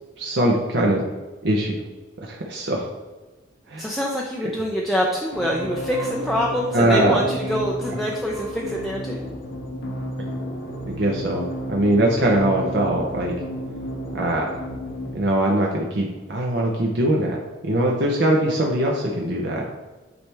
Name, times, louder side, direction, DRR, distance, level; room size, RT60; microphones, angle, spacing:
voice 1, 0.2-1.0 1.4-1.7 2.2-2.9 3.7-3.9 6.7-7.2 10.9-13.3 14.1-14.6 15.1-17.4 17.6-19.7, right 1 dB, 60° right, -1 dB, 0.7 m, -21 dB
voice 2, 3.8-9.2, equal, ahead, -3 dB, 0.5 m, -25 dB
sound 1, 5.3-15.1, equal, 80° left, 1.3 m, -32 dB
8.8 x 3.4 x 3.3 m, 1.2 s
head